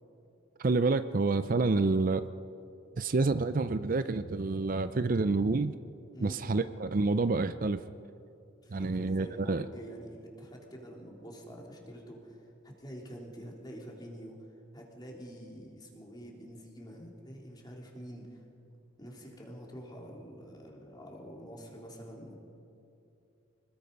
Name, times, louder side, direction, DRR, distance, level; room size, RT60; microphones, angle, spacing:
voice 1, 0.6-2.2 3.0-5.8 6.2-7.8 8.7-9.7, right 3 dB, 45° right, 11 dB, 0.5 m, -28 dB
voice 2, 8.6-14.4 14.7-18.4 19.0-22.3, equal, 20° left, -1 dB, 3.4 m, -47 dB
26.0 x 20.0 x 5.4 m, 2.7 s
head